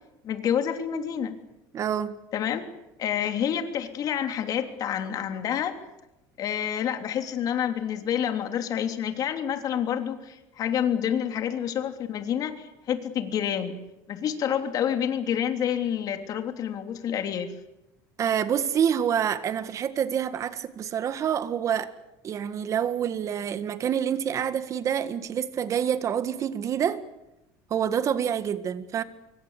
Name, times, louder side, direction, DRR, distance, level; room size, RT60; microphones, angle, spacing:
voice 1, 0.2-1.3 2.3-2.6 3.0-5.8 6.4-13.8 14.1-17.5, left 9 dB, 45° left, 3.3 m, -28 dB
voice 2, 1.7-2.2 18.2-21.9 22.2-27.0 27.7-29.0, right 8 dB, 40° right, 1.8 m, -27 dB
25.5 x 24.0 x 8.3 m
cardioid pair, 130°, 9 cm